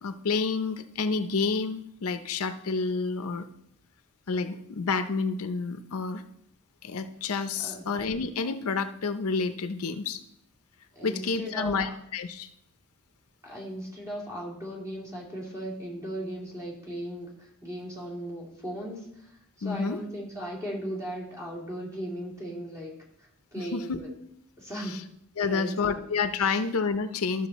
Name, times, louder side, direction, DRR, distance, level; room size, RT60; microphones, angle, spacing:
voice 1, 0.0-3.5 4.3-6.2 6.8-10.2 11.0-12.5 19.6-20.0 23.6-24.0 24.9-25.0 25.4-27.5, left 4 dB, 70° left, 9 dB, 0.6 m, -29 dB
voice 2, 10.9-11.7 13.4-22.9 23.2-24.1 24.6-25.0 25.4-26.0 26.4-26.6, equal, 15° right, -3 dB, 2.6 m, -37 dB
13.0 x 6.3 x 4.1 m, 0.75 s
head